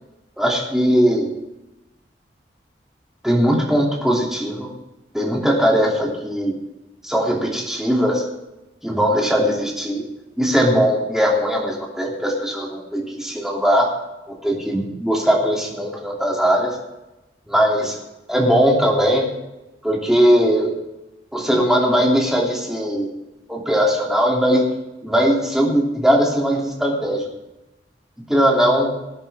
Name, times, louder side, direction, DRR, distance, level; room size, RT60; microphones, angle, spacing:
voice 1, 0.4-1.3 3.2-4.7 5.1-6.5 7.0-8.2 8.8-10.1 10.4-14.0 14.3-16.8 17.5-18.0 18.3-19.3 19.8-20.7 21.3-23.1 23.5-24.7 25.0-27.3 28.3-28.9, equal, 5° right, -3 dB, 3.0 m, -19 dB
19.0 x 10.0 x 3.7 m, 0.97 s
head